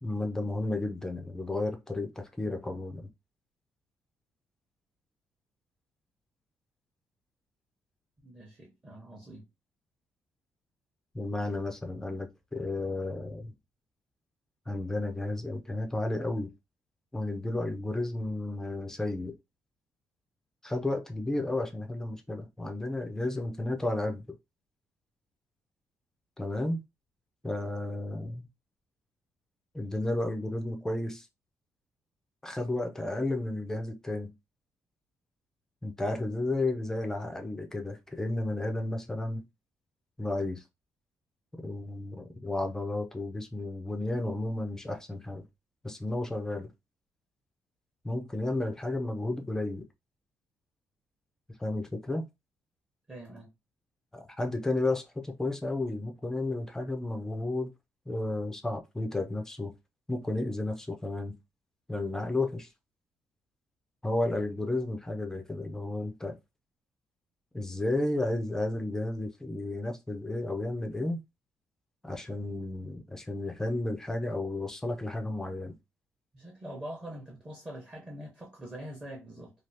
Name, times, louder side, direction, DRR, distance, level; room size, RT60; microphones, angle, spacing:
voice 1, 0.0-3.1 11.1-13.5 14.7-16.5 17.1-19.3 20.6-24.4 26.4-26.8 27.4-28.5 29.7-31.3 32.4-34.3 35.8-39.4 40.2-40.6 41.6-45.4 45.8-46.7 48.0-49.8 51.6-52.2 54.1-57.7 58.1-59.7 60.1-61.3 61.9-62.7 64.0-66.3 67.5-71.2 72.0-75.7, left 2 dB, 10° left, 0.4 m, -32 dB
voice 2, 8.2-9.4 53.1-53.5 76.3-79.5, right 1 dB, 20° right, 0.8 m, -44 dB
3.2 x 2.3 x 2.7 m
cardioid pair, 170°, 6 cm